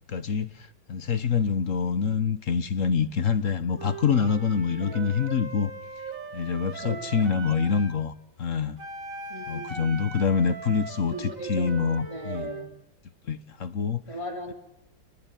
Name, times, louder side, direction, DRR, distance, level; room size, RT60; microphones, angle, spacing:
voice 1, 0.1-5.7 6.3-8.8 9.5-11.1 11.5-12.5 13.3-14.0, left 6 dB, 45° left, 13 dB, 1.3 m, -26 dB
Wind instrument woodwind instrument, 3.8-8.0 8.8-12.7, right 4 dB, 40° right, 2.6 m, -40 dB
voice 2, 4.8-5.2 6.8-7.3 9.3-9.9 11.1-12.8 14.1-14.5, right 1 dB, 15° left, 4 dB, 3.0 m, -38 dB
27.0 x 20.0 x 9.2 m, 0.90 s
omnidirectional pair, 2.3 m